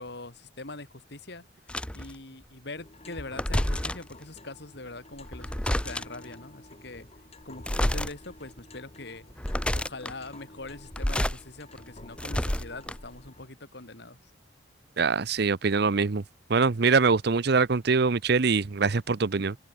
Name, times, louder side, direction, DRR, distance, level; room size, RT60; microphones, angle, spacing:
voice 1, 0.0-1.4 1.9-7.1 7.4-9.3 9.7-14.3, left 2 dB, 60° left, 3.0 m, -42 dB
sound 1, 1.7-2.1 3.2-4.1 5.2-6.2 7.6-8.1 8.6-8.7 9.3-10.1 10.8-11.4 11.8-13.2, left 1 dB, 5° left, 0.8 m, -29 dB
sound 2, 2.7-13.5, left 2 dB, 35° left, 5.2 m, -51 dB
voice 2, 15.0-16.2 16.5-19.6, right 4 dB, 60° right, 0.7 m, -23 dB
head